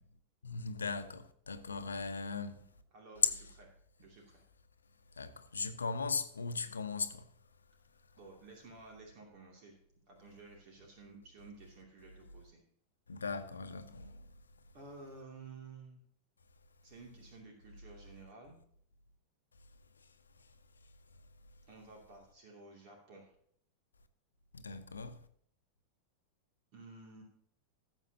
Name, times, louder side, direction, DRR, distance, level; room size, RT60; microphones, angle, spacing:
voice 1, 0.4-2.6 3.2-3.3 5.1-7.3 13.1-14.2 20.4-20.5 24.5-25.2, left 4 dB, 75° left, 0.9 m, -37 dB
voice 2, 2.9-3.3 3.6-3.7 4.0-4.4 8.2-9.8 10.1-12.6 14.7-16.0 16.8-18.6 21.7-23.3 26.7-27.2, right 3 dB, 45° right, 2.7 m, -53 dB
17.5 x 7.5 x 2.9 m
figure-of-eight pair, 90°, 0 cm